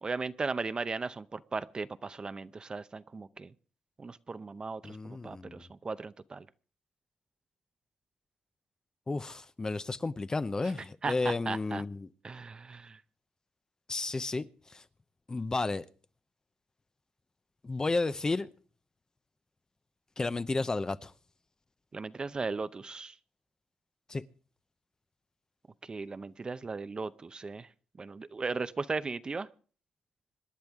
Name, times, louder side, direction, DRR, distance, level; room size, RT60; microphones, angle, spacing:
voice 1, 0.0-3.5 4.0-6.5 11.0-11.8 12.2-13.0 21.9-23.1 25.9-27.7 28.0-29.5, right 4 dB, 30° right, 0.6 m, -37 dB
voice 2, 4.8-5.7 9.1-12.1 13.9-14.8 15.3-15.9 17.6-18.5 20.2-21.1 24.1-24.2, left 3 dB, 25° left, 0.6 m, -32 dB
26.0 x 10.5 x 3.6 m
cardioid pair, 100°, 3 cm